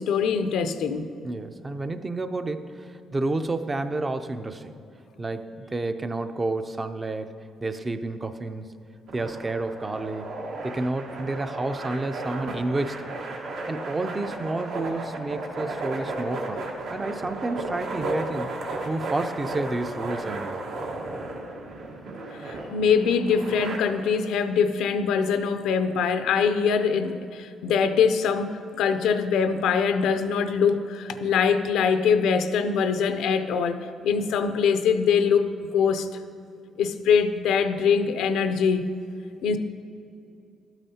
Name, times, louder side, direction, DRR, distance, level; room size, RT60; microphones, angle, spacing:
voice 1, 0.0-1.1 22.4-28.5 28.8-35.4 35.7-36.1 36.8-38.9 39.4-39.6, left 6 dB, 85° left, 9 dB, 0.5 m, -23 dB
voice 2, 1.2-4.7 5.2-8.8 9.1-10.4 10.6-13.1 13.7-16.6 16.9-18.5 18.8-20.7, right 2 dB, 25° right, 9 dB, 0.4 m, -30 dB
sound 1, 9.1-23.8, right 2 dB, 75° right, 1.2 m, -34 dB
12.0 x 8.9 x 2.8 m, 2.6 s
cardioid pair, 115°, 0 cm